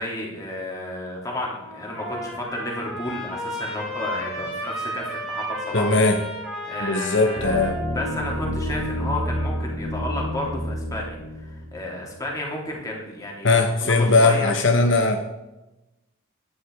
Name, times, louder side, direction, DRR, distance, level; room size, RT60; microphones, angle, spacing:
voice 1, 0.0-5.9 6.6-7.7 7.9-11.2 11.4-14.5, left 1 dB, 15° left, -2 dB, 3.1 m, -32 dB
Trumpet, 1.2-9.7, equal, ahead, 3.9 m, -34 dB
voice 2, 5.7-6.2 6.8-7.8 13.4-15.2, left 3 dB, 60° left, 5 dB, 1.0 m, -19 dB
sound 1, 7.4-11.8, equal, 40° left, 2.3 m, -29 dB
11.5 x 10.0 x 4.8 m, 1.0 s
head